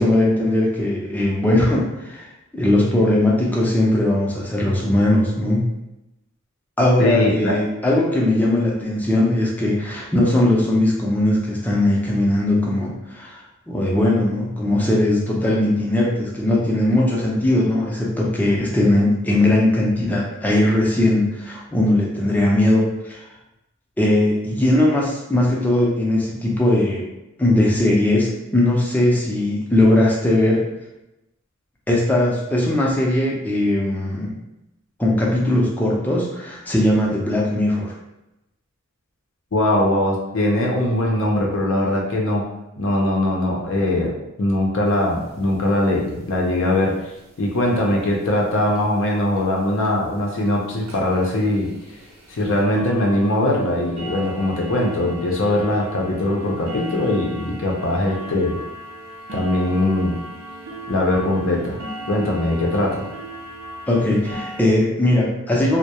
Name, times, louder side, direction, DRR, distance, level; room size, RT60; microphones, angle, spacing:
voice 1, 0.0-2.3 2.5-5.7 6.8-13.4 13.7-23.2 24.0-27.1 27.4-30.6 31.9-34.3 35.0-37.9 63.9-65.8, left 1 dB, 10° left, -4 dB, 0.4 m, -19 dB
voice 2, 7.0-7.6 39.5-42.5 42.8-47.0 47.4-51.7 52.3-58.6 59.3-60.2 60.9-61.8 62.1-63.1, left 1 dB, 60° left, -1 dB, 0.5 m, -21 dB
sound 1, 44.9-45.0 45.3-45.4 45.6-45.7 46.1-46.4 47.2-47.3 47.8-47.9 48.3-48.4 48.8-48.9 49.4-49.5 49.8-50.0 50.5-50.6 50.9-64.6, right 1 dB, 75° right, 0.6 m, -37 dB
2.2 x 2.0 x 2.8 m, 0.93 s
head